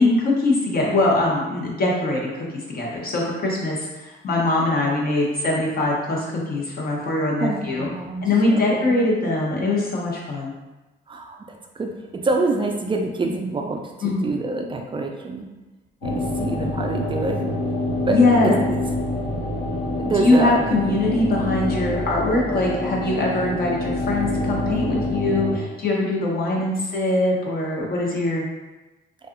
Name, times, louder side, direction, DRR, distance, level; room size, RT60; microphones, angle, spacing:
voice 1, 0.0-2.5 2.7-7.9 8.2-10.6 14.0-14.2 18.1-18.5 20.2-28.4, left 2 dB, 50° left, -3 dB, 0.8 m, -22 dB
voice 2, 7.4-8.2 8.5-9.0 11.1-11.4 11.8-11.9 12.2-15.5 16.0-17.4 18.0-18.8 20.0-20.8, right 3 dB, 25° right, 2 dB, 0.4 m, -26 dB
sound 1, 16.0-25.6, left 1 dB, 90° left, 0.7 m, -26 dB
2.6 x 2.3 x 2.4 m, 1.1 s
cardioid pair, 90°, 20 cm